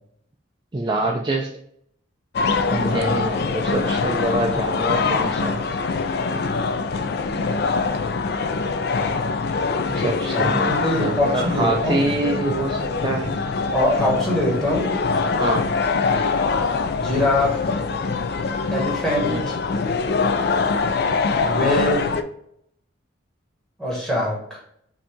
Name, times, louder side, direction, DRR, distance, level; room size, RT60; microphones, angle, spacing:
voice 1, 0.7-1.5 2.9-5.6 9.9-13.3 15.4-15.7 19.3-19.5, right 2 dB, 20° right, 0 dB, 0.3 m, -26 dB
sound 1, 2.3-22.2, left 4 dB, 50° left, 0.4 m, -23 dB
voice 2, 2.6-3.2 10.3-12.0 13.7-14.9 17.0-17.6 18.7-19.6 21.4-22.1 23.8-24.6, left 1 dB, ahead, -4 dB, 1.4 m, -23 dB
5.3 x 2.8 x 3.5 m, 0.71 s
head